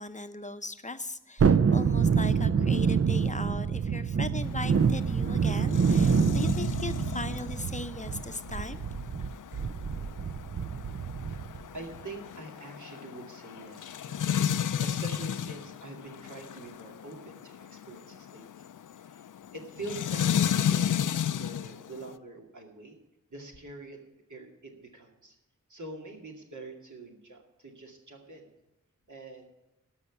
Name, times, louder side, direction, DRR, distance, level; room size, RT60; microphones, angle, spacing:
voice 1, 0.0-8.8, left 2 dB, 25° left, 10 dB, 0.7 m, -38 dB
Thunderstorm, 1.4-11.6 12.0-12.1, right 6 dB, 45° right, 0.6 m, -26 dB
sound 1, 4.4-22.1, left 9 dB, 70° left, 0.5 m, -34 dB
voice 2, 11.3-18.7 19.0-19.2 19.5-23.0 23.3-24.0 24.3-25.4 25.7-28.5 29.1-29.4, right 2 dB, 65° right, 0 dB, 2.2 m, -45 dB
13.0 x 5.7 x 9.5 m, 0.94 s
wide cardioid pair, 65°, 32 cm